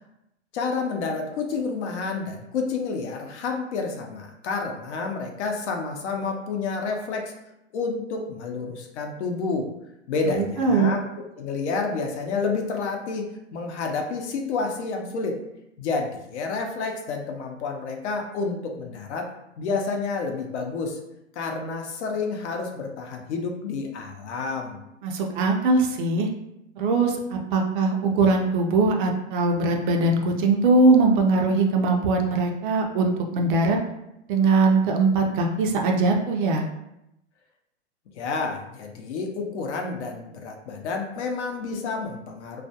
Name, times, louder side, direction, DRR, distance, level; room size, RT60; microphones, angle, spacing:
voice 1, 0.5-7.3 7.7-9.7 10.1-11.1 11.4-15.4 15.8-19.3 19.6-21.0 21.4-24.8 38.1-42.6, left 4 dB, 70° left, 3 dB, 0.6 m, -29 dB
voice 2, 10.3-11.0 25.0-26.3 26.8-33.8 34.3-36.6, right 3 dB, 45° right, 2 dB, 0.4 m, -21 dB
2.3 x 2.2 x 2.7 m, 0.84 s
hypercardioid pair, 120°, 36 cm